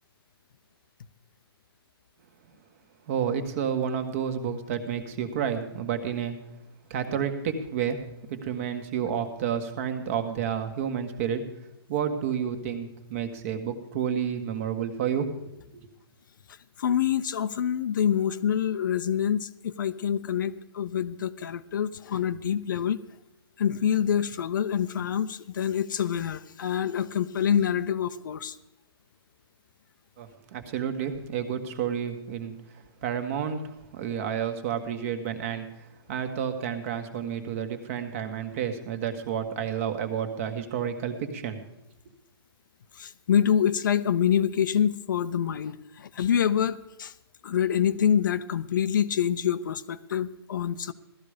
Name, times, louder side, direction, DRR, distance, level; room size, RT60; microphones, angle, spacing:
voice 1, 3.1-6.4 6.9-8.0 8.3-11.4 11.9-15.3 15.7-15.8 30.2-32.5 33.0-33.6 33.9-41.6, right 8 dB, 35° right, 7 dB, 1.6 m, -30 dB
voice 2, 16.8-23.0 23.6-28.6 42.9-47.1 47.4-50.9, left 8 dB, 50° left, 12 dB, 0.7 m, -26 dB
17.0 x 13.0 x 5.1 m, 0.84 s
hypercardioid pair, 160°, 14 cm